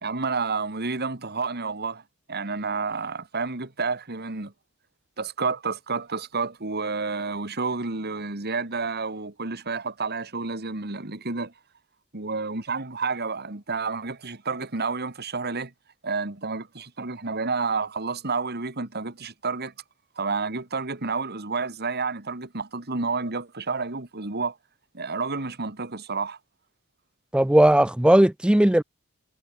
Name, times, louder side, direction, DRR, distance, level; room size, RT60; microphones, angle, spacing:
voice 1, 0.0-2.0 2.3-4.5 5.2-11.5 12.1-15.7 16.0-19.7 20.2-24.6 24.9-26.4, right 4 dB, 45° right, 2.2 m, -30 dB
voice 2, 27.3-28.8, right 1 dB, 5° right, 0.4 m, -17 dB
head